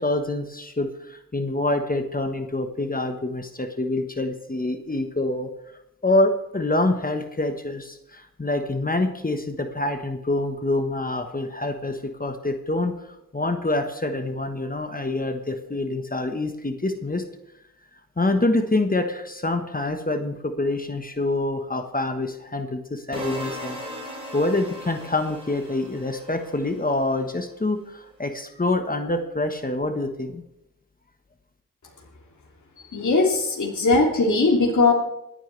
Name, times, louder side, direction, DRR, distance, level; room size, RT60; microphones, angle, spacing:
voice 1, 0.0-5.5 6.0-12.9 13.3-17.2 18.2-30.4, left 2 dB, 25° left, 6 dB, 1.3 m, -26 dB
sound 1, 23.1-27.2, equal, 15° right, 4.4 m, -38 dB
voice 2, 32.9-34.9, left 3 dB, 60° left, -2 dB, 2.8 m, -19 dB
27.5 x 9.3 x 3.4 m, 0.85 s
cardioid pair, 55°, 33 cm